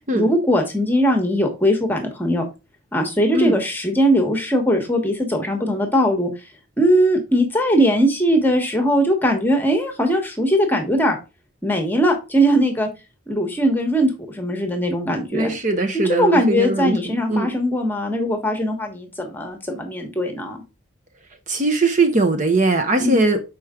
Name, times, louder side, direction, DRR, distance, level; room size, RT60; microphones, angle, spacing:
voice 1, 0.1-2.4 2.9-6.3 6.8-11.2 11.6-12.9 13.3-15.5 16.1-20.6 23.0-23.2, equal, 10° left, 1.2 m, -20 dB
voice 2, 15.3-17.6 21.5-23.4, right 2 dB, 35° right, 0.7 m, -20 dB
6.1 x 4.5 x 3.6 m
head